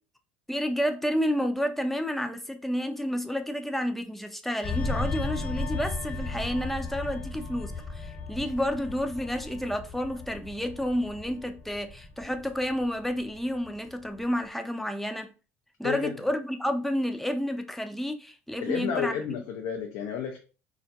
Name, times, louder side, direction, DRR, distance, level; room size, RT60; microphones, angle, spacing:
voice 1, 0.5-15.3 15.8-19.2, equal, 5° left, 0.4 m, -30 dB
sound 1, 4.6-13.7 14.0-14.3, left 3 dB, 40° left, 1.0 m, -35 dB
voice 2, 18.6-20.4, left 7 dB, 65° left, 0.4 m, -31 dB
2.3 x 2.1 x 2.7 m
hypercardioid pair, 70°, 7 cm